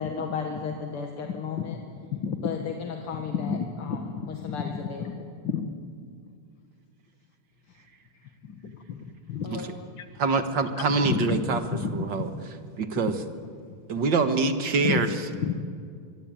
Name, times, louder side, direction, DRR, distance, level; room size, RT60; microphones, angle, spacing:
voice 1, 0.0-1.8 2.4-5.3 8.1-8.2 9.4-9.8, left 6 dB, 80° left, 3 dB, 2.6 m, -35 dB
voice 2, 2.1-2.5 3.3-3.6 3.9-4.8 5.1-5.2 5.4-5.7 8.4-9.0 9.3-9.6 11.1-12.3 14.8-15.0 15.4-15.5, left 7 dB, 60° left, 9 dB, 2.1 m, -30 dB
voice 3, 10.2-11.6 11.9-12.3 12.8-13.1 13.9-15.1, right 4 dB, 55° right, 8 dB, 2.1 m, -24 dB
24.0 x 24.0 x 9.0 m, 2.2 s
omnidirectional pair, 2.4 m